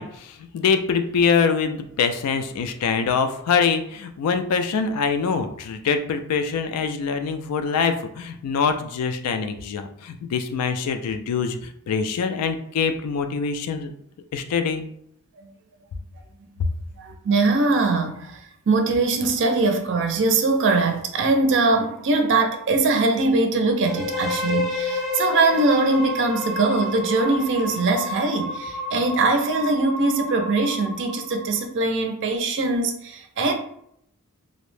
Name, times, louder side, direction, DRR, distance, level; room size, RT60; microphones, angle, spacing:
voice 1, 0.0-13.9 14.3-14.9, left 5 dB, 90° left, 0.3 m, -24 dB
voice 2, 17.0-33.5, right 3 dB, 55° right, 0.4 m, -22 dB
sound 1, 23.8-31.6, left 2 dB, ahead, 0.7 m, -30 dB
2.6 x 2.0 x 3.1 m
head